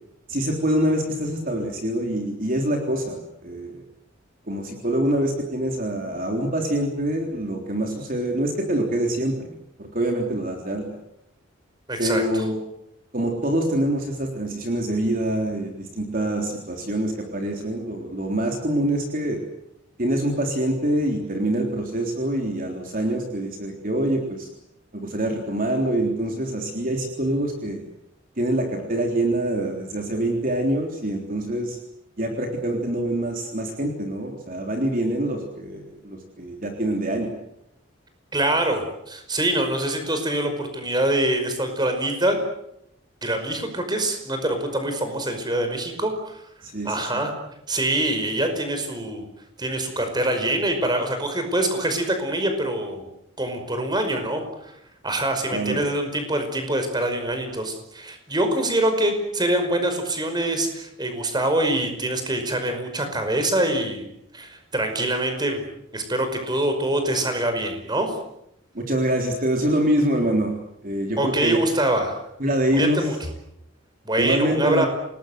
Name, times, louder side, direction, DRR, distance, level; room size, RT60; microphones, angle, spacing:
voice 1, 0.3-3.8 4.5-11.0 12.0-12.6 13.1-19.4 20.0-24.5 24.9-27.8 28.4-31.8 32.2-37.3 46.6-47.2 55.5-55.8 68.7-70.5 70.8-71.6 72.4-73.1 74.2-74.8, right 1 dB, 45° right, 2 dB, 3.7 m, -25 dB
voice 2, 11.9-12.4 38.3-42.4 43.2-46.4 46.8-47.3 47.7-49.2 49.6-53.0 53.4-54.7 55.0-64.0 64.3-65.6 65.9-68.2 71.2-72.2 72.7-73.2 74.1-74.9, right 1 dB, 20° right, 6 dB, 5.4 m, -24 dB
28.0 x 20.5 x 8.0 m, 0.79 s
head